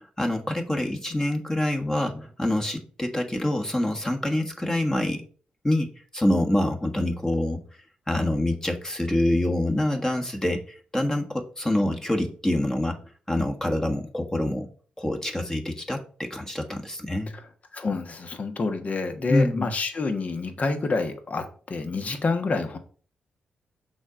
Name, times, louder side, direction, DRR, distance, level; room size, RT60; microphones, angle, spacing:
voice 1, 0.2-5.2 5.6-7.6 8.1-13.0 13.3-14.7 15.0-17.3 19.3-19.7, left 1 dB, 20° left, 2 dB, 1.3 m, -26 dB
voice 2, 17.7-22.8, left 3 dB, 50° left, 7 dB, 1.3 m, -28 dB
6.2 x 3.8 x 5.0 m, 0.42 s
hypercardioid pair, 45°, 3 cm